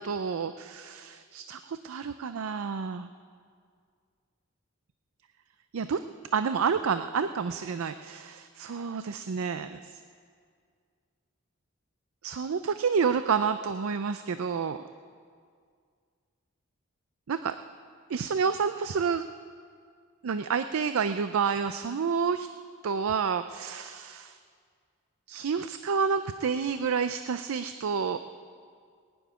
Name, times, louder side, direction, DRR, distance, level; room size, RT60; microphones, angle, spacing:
voice 1, 0.0-3.1 5.7-6.0 6.3-9.8 12.2-14.8 17.3-17.6 18.1-19.2 20.2-22.5 22.8-24.4 25.3-28.2, right 6 dB, 75° right, 10 dB, 0.4 m, -29 dB
20.0 x 7.1 x 9.3 m, 2.1 s
head